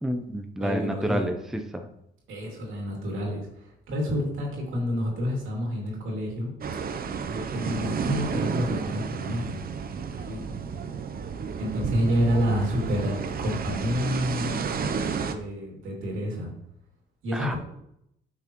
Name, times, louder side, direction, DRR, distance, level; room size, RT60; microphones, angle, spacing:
voice 1, 0.0-1.9 17.3-17.6, equal, ahead, 5 dB, 0.7 m, -29 dB
voice 2, 0.6-1.3 2.3-6.5 7.3-9.6 10.1-10.5 11.6-14.9 15.2-16.5 17.2-17.6, equal, 85° right, -1 dB, 2.6 m, -29 dB
sound 1, 6.6-15.3, right 6 dB, 50° right, 0.7 m, -31 dB
8.5 x 5.9 x 3.1 m, 0.79 s
cardioid pair, 90°, 20 cm